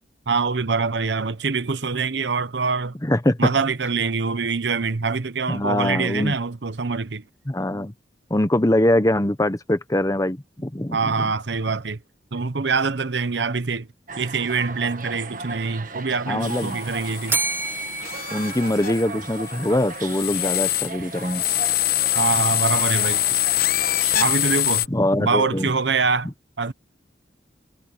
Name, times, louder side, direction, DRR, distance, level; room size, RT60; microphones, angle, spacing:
voice 1, 0.3-3.0 3.4-7.2 10.9-12.0 12.3-13.9 14.2-17.4 22.1-23.2 24.2-24.9 25.2-26.3 26.6-26.7, right 4 dB, 80° right, 1.0 m, -24 dB
voice 2, 3.0-3.5 5.5-6.3 7.5-7.9 8.3-11.3 16.3-16.8 18.3-21.4 24.9-25.7, left 1 dB, 20° left, 0.9 m, -23 dB
sound 1, 14.1-24.6, right 4 dB, 50° right, 1.5 m, -36 dB
sound 2, 16.4-24.9, left 16 dB, 55° left, 1.0 m, -25 dB
Bell, 17.3-19.5, right 3 dB, 15° right, 1.4 m, -29 dB
head